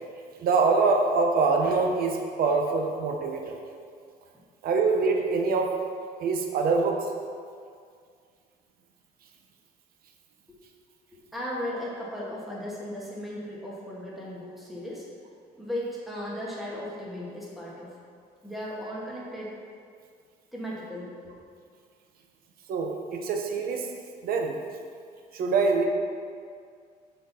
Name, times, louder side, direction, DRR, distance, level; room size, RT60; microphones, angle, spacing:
voice 1, 0.4-3.6 4.6-5.7 6.2-7.0 22.7-23.9 24.2-24.6 25.3-25.9, right 4 dB, 60° right, 3 dB, 0.7 m, -24 dB
voice 2, 11.1-15.1 15.6-17.9 18.4-19.5 20.5-21.3, left 1 dB, ahead, -6 dB, 1.5 m, -36 dB
6.4 x 4.4 x 4.1 m, 2.2 s
cardioid pair, 110°, 17 cm